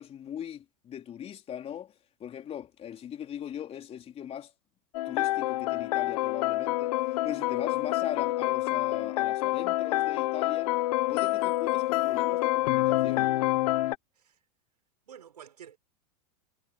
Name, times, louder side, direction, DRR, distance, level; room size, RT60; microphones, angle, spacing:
voice 1, 0.0-1.9 2.2-4.5 5.1-10.7 11.1-13.3, left 9 dB, 30° left, 3.8 m, -40 dB
sound 1, 4.9-14.0, left 17 dB, 65° left, 1.1 m, -27 dB
voice 2, 15.1-15.8, right 9 dB, 90° right, 5.5 m, -49 dB
hypercardioid pair, 110°, 20 cm